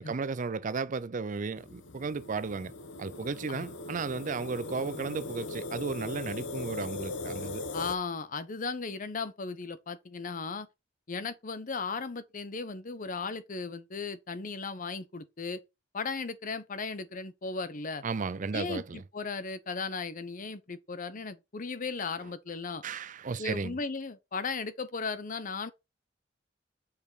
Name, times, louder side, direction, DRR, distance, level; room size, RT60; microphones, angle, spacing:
voice 1, 0.0-2.7 3.0-7.6 18.0-19.0 22.8-23.8, right 4 dB, 45° right, 0.5 m, -34 dB
sound 1, 1.6-8.0, left 2 dB, 85° left, 0.9 m, -39 dB
voice 2, 7.7-10.7 11.1-15.6 15.9-18.0 18.5-22.8 23.4-25.7, left 4 dB, 45° left, 0.8 m, -36 dB
6.7 x 5.2 x 4.1 m
head